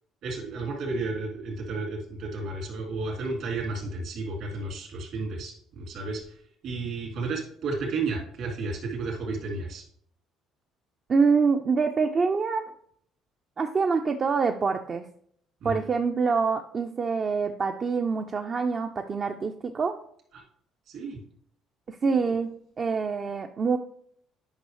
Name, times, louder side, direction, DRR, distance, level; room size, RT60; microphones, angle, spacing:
voice 1, 0.2-9.8 15.6-15.8 20.3-20.4 20.9-21.2 22.0-22.3, right 3 dB, 65° right, 1 dB, 2.7 m, -32 dB
voice 2, 11.1-12.7 13.6-15.1 15.6-20.0 21.9-23.8, right 5 dB, 40° right, 5 dB, 0.5 m, -25 dB
9.3 x 5.4 x 3.1 m, 0.65 s
hypercardioid pair, 60°, 0 cm